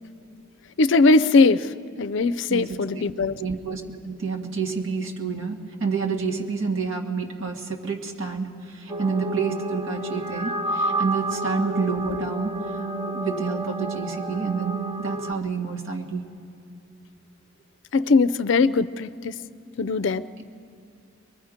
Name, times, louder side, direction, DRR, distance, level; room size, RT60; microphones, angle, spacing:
voice 1, 0.8-3.4 13.3-13.4 17.9-19.3 19.8-20.2, left 3 dB, 60° left, 16 dB, 0.4 m, -20 dB
voice 2, 2.5-3.1 3.4-12.6 13.1-16.2, right 4 dB, 70° right, 2 dB, 1.8 m, -29 dB
sound 1, 8.9-15.3, right 2 dB, 20° right, 0.6 m, -30 dB
23.0 x 23.0 x 5.1 m, 2.5 s
head